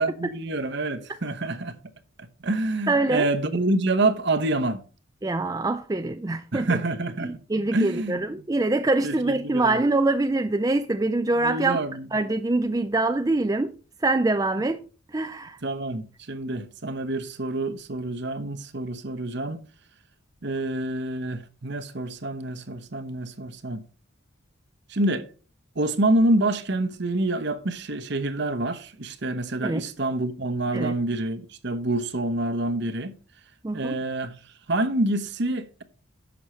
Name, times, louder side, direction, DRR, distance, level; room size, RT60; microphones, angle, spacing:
voice 1, 0.0-1.7 2.2-4.8 6.5-7.3 7.7-8.2 9.0-9.8 11.4-12.1 15.6-19.6 20.4-23.8 24.9-25.3 25.8-33.1 33.7-34.3 34.7-35.8, right 2 dB, 55° right, 1.0 m, -27 dB
voice 2, 2.9-3.3 5.2-6.8 7.2-11.8 12.1-13.7 14.0-14.8 15.1-15.6 29.6-29.8 30.7-30.9 33.6-34.0, right 2 dB, 15° right, 0.4 m, -24 dB
11.0 x 7.2 x 3.2 m
head